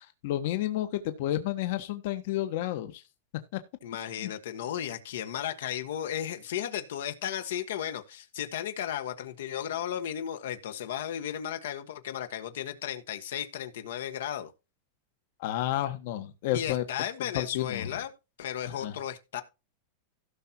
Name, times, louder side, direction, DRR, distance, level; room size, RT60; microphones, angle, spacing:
voice 1, 0.0-3.0 4.2-4.3 15.4-16.8 17.3-17.8 18.8-18.9, left 13 dB, 65° left, 1.3 m, -31 dB
voice 2, 3.8-14.5 16.5-18.1 18.4-19.4, left 10 dB, 80° left, 1.4 m, -35 dB
16.5 x 5.9 x 2.9 m
supercardioid pair, 140°, 0 cm